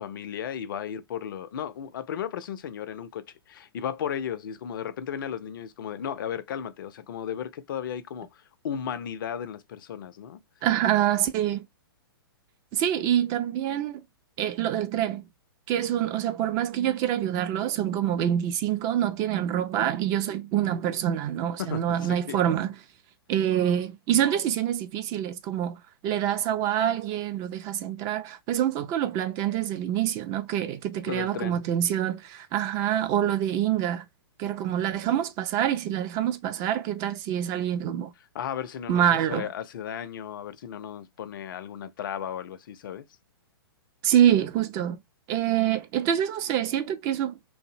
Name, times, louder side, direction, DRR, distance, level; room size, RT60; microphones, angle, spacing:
voice 1, 0.0-10.4 21.6-22.4 31.1-31.6 38.3-43.1, left 8 dB, 60° left, 0.4 m, -35 dB
voice 2, 10.6-11.7 12.7-14.0 14.4-15.2 15.7-22.7 23.3-34.0 34.4-38.1 38.9-39.5 44.0-45.0 45.3-47.4, right 10 dB, 30° right, 0.3 m, -26 dB
2.5 x 2.0 x 2.7 m
hypercardioid pair, 120°, 13 cm